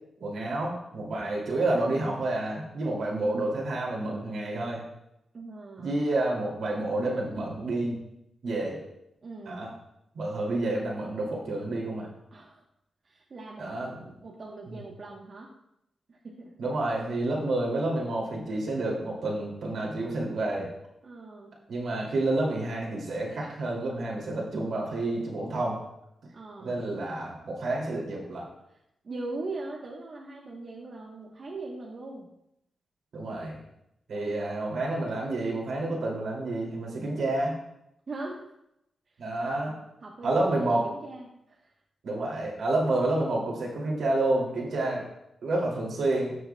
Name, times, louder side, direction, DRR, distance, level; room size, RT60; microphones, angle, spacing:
voice 1, 0.2-4.8 5.8-8.0 8.4-8.8 9.5-9.7 10.1-12.1 13.6-13.9 16.6-20.7 21.7-25.8 26.6-28.4 33.1-33.6 34.1-37.6 39.2-39.7 40.2-40.8 42.0-45.0 45.4-46.4, right 2 dB, 75° right, -3 dB, 2.5 m, -29 dB
voice 2, 5.3-6.0 9.2-9.7 12.3-12.6 13.0-13.7 14.2-15.5 16.1-16.5 21.0-21.6 26.3-26.8 28.7-28.8 29.0-32.3 34.1-34.5 38.1-38.4 39.1-39.2 40.0-41.7, right 2 dB, 50° right, -2 dB, 1.0 m, -40 dB
12.0 x 6.7 x 2.2 m, 0.82 s
cardioid pair, 100°, 0 cm